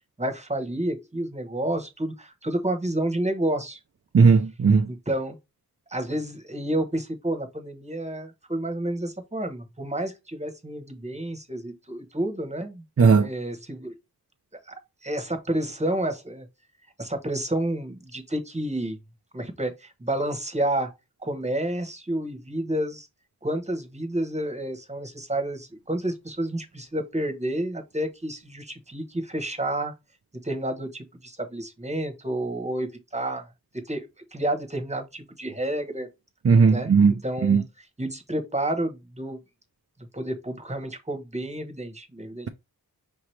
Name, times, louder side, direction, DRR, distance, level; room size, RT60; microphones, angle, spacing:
voice 1, 0.2-3.8 4.9-5.4 5.9-12.8 13.2-13.9 14.7-16.5 17.0-19.0 19.3-20.9 21.2-23.1 23.4-29.9 30.4-33.4 33.8-36.1 36.7-36.9 37.2-37.6 38.0-39.4 40.1-42.5, right 1 dB, 15° right, 1.1 m, -30 dB
voice 2, 4.1-4.9 13.0-13.3 36.4-37.1 37.4-37.6, right 5 dB, 40° right, 0.4 m, -17 dB
5.2 x 2.9 x 3.2 m
wide cardioid pair, 45°, 38 cm